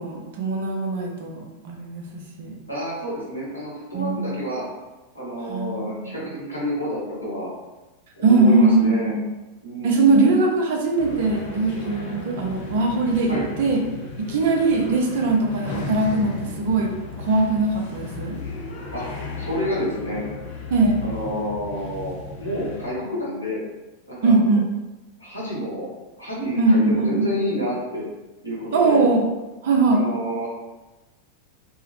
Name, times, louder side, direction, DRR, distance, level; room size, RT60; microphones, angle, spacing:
voice 1, 0.0-2.5 3.9-4.4 5.5-6.1 8.2-9.3 9.8-13.8 14.2-16.9 17.2-18.4 20.7-21.0 24.2-24.7 26.6-27.3 28.7-29.3 29.6-30.0, right 3 dB, 55° right, 1 dB, 0.5 m, -21 dB
voice 2, 2.7-4.7 5.1-7.5 8.2-9.2 9.6-10.1 13.3-13.5 18.9-19.1 19.4-20.2 21.0-23.6 24.1-24.4 25.2-25.9 26.2-28.0 28.4-29.0 29.9-30.5, equal, 90° left, -8 dB, 1.0 m, -29 dB
sound 1, 11.0-22.9, left 3 dB, 50° left, 0.5 m, -35 dB
2.7 x 2.0 x 2.8 m, 1.1 s
figure-of-eight pair, 90°, 0 cm